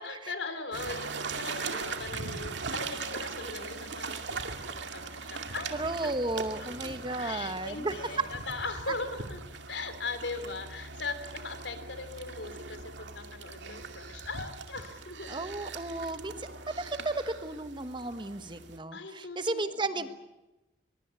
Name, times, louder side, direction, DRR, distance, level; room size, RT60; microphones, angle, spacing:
voice 1, 0.0-5.7 6.0-6.1 6.5-9.4 9.7-15.4 18.9-20.1, left 3 dB, 80° left, 10 dB, 3.3 m, -39 dB
sound 1, 0.7-18.8, right 4 dB, 85° right, 2.2 m, -40 dB
voice 2, 5.7-8.1 15.3-20.1, right 2 dB, 25° right, 11 dB, 1.3 m, -34 dB
23.0 x 22.5 x 8.4 m, 1.0 s
head